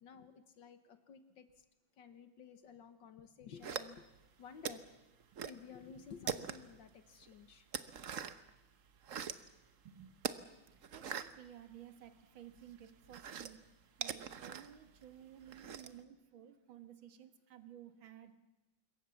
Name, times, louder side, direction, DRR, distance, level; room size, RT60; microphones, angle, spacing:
voice 1, 0.0-1.7 2.0-4.1 4.4-4.9 5.5-7.7, left 6 dB, 70° left, 10 dB, 1.8 m, -54 dB
sound 1, 3.6-4.3 4.6-5.6 5.9-6.8 7.2-8.5 8.9-9.5 10.2-12.2 12.5-16.0, right 8 dB, 50° right, 1.1 m, -42 dB
voice 2, 10.9-13.6 14.0-18.4, right 10 dB, 90° right, 9 dB, 2.3 m, -55 dB
26.0 x 22.5 x 7.1 m, 1.1 s
omnidirectional pair, 2.1 m